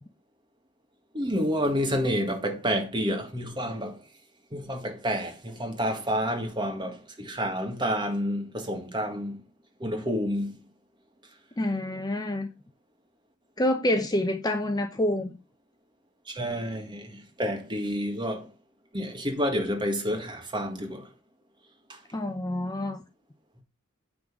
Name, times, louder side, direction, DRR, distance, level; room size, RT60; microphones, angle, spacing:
voice 1, 1.1-4.0 4.5-9.4 9.8-10.5 16.3-18.5 18.9-21.1 21.9-22.0, equal, 20° right, 1.7 m, -29 dB
voice 2, 11.6-12.5 13.6-15.3 22.1-23.0, left 1 dB, 20° left, 0.7 m, -27 dB
9.1 x 3.9 x 6.1 m
head